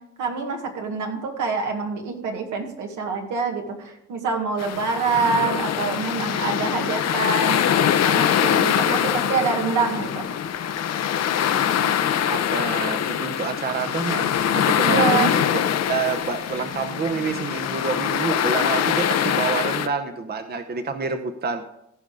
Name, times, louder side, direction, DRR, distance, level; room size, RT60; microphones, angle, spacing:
voice 1, 0.2-10.3 14.8-15.3, right 4 dB, 80° right, 2 dB, 2.0 m, -26 dB
sound 1, 4.6-19.9, left 9 dB, 55° left, 0.8 m, -23 dB
voice 2, 8.7-9.2 11.7-14.3 14.6-15.4 15.9-21.8, right 5 dB, 35° right, 9 dB, 0.8 m, -28 dB
15.5 x 5.3 x 4.9 m, 0.81 s
cardioid pair, 90°, 30 cm